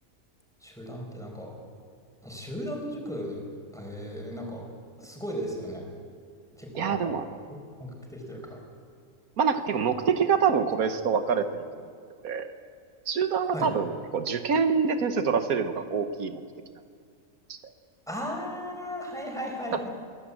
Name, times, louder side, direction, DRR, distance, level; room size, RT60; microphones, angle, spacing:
voice 1, 0.6-1.5 2.2-3.4 3.7-4.7 5.0-5.8 6.6-7.2 7.8-8.6 13.5-13.7 18.1-19.9, equal, ahead, 0 dB, 5.3 m, -36 dB
voice 2, 6.8-7.3 9.4-11.8 12.2-12.5 13.1-16.4 17.5-17.6 19.7-19.8, right 6 dB, 85° right, 8 dB, 1.6 m, -26 dB
24.0 x 17.5 x 8.6 m, 2.2 s
omnidirectional pair, 1.5 m